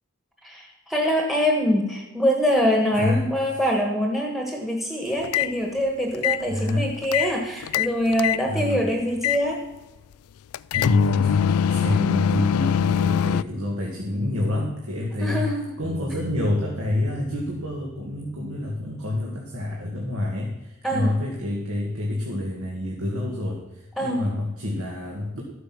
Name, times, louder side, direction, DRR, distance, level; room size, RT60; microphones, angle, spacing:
voice 1, 0.4-9.7 15.2-15.8 20.8-21.1 24.0-24.3, equal, ahead, 2 dB, 1.3 m, -24 dB
sound 1, 5.2-5.5 6.1-7.3 7.6-8.4 9.2-9.4 10.5-13.4, left 8 dB, 85° left, 0.4 m, -22 dB
voice 2, 6.5-6.9 8.4-8.9 10.7-15.5 15.8-25.4, left 1 dB, 75° right, -1 dB, 2.0 m, -27 dB
Bass guitar, 15.8-20.3 20.9-22.1, right 2 dB, 35° right, 0.9 m, -42 dB
13.0 x 8.3 x 6.1 m, 0.99 s
head